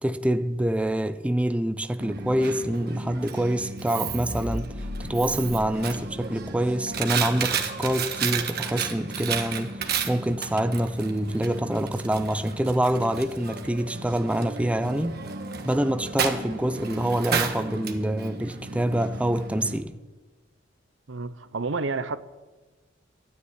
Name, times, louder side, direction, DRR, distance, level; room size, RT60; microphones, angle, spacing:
voice 1, 0.0-15.2 15.6-19.9, right 1 dB, 5° right, 0.5 m, -26 dB
Coin (dropping), 2.0-19.8, right 5 dB, 55° right, 1.4 m, -33 dB
sound 1, 4.1-8.6, left 1 dB, 35° left, 1.1 m, -39 dB
voice 2, 21.1-22.2, right 3 dB, 75° right, 0.8 m, -29 dB
12.5 x 9.4 x 9.4 m
head